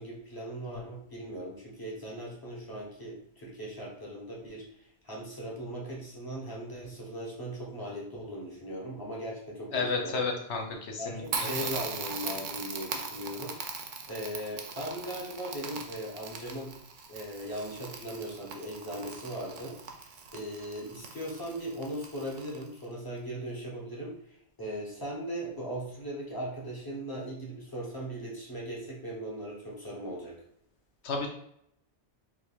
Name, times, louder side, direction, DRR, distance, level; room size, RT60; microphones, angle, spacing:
voice 1, 0.0-4.7 5.0-10.2 11.0-13.6 14.1-16.8 17.1-19.8 20.3-24.2 24.6-30.4, equal, 20° left, -4 dB, 1.0 m, -38 dB
voice 2, 9.7-11.5 31.0-31.3, left 4 dB, 85° left, 2 dB, 1.0 m, -32 dB
Crackle, 11.3-22.8, right 5 dB, 60° right, 0.6 m, -40 dB
3.6 x 3.0 x 2.3 m, 0.73 s
omnidirectional pair, 1.1 m